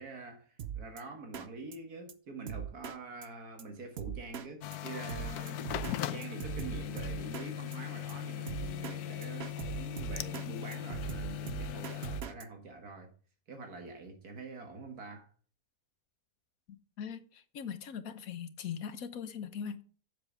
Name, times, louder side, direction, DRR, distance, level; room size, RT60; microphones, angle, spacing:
voice 1, 0.0-5.7 6.1-13.1 13.5-15.3, right 3 dB, 75° right, 2.1 m, -45 dB
Drum kit, 0.6-1.0 1.3-1.5 1.7-1.8 2.1-2.2 2.5-3.0 3.2-3.3 3.6-3.7 4.0-4.5 4.7-4.8 5.1-6.0 6.2-7.5 7.7-7.8 8.1-8.2 8.5-9.0 9.2-10.5 10.7-12.4, right 9 dB, 50° right, 1.0 m, -39 dB
sound 1, 4.6-12.2, left 12 dB, 80° left, 1.2 m, -39 dB
voice 2, 17.0-19.8, left 7 dB, 65° left, 1.4 m, -40 dB
7.7 x 7.2 x 7.3 m
omnidirectional pair, 1.6 m